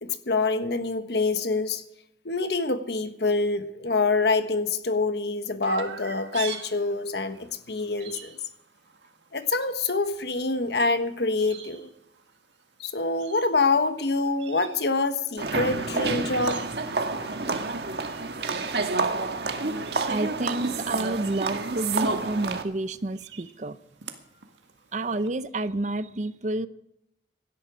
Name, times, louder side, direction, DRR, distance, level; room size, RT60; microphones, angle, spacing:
voice 1, 0.0-1.8 2.2-8.4 9.3-11.9 12.8-16.6, left 3 dB, 65° left, 9 dB, 1.3 m, -26 dB
Chirp tweet, 5.6-25.3, right 7 dB, 85° right, 1.9 m, -47 dB
sound 1, 15.4-22.6, right 3 dB, 65° right, 1.6 m, -29 dB
voice 2, 20.0-23.8 24.9-26.7, right 2 dB, 40° right, 14 dB, 0.6 m, -29 dB
17.5 x 12.5 x 5.0 m, 0.79 s
head